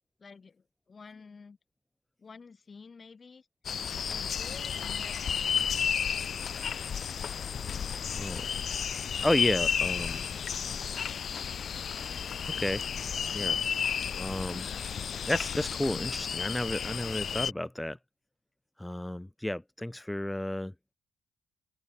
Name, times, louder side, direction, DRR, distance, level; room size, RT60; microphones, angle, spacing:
voice 1, 0.2-1.6 2.2-3.5 4.1-5.5, left 5 dB, 35° left, 4.8 m, -50 dB
sound 1, 3.6-17.5, left 7 dB, 55° left, 0.4 m, -32 dB
voice 2, 9.2-10.2 12.6-12.8 13.3-13.6 14.2-14.7 15.2-18.0 18.8-20.7, left 1 dB, 5° left, 1.0 m, -32 dB
open air
cardioid pair, 90°, 0 cm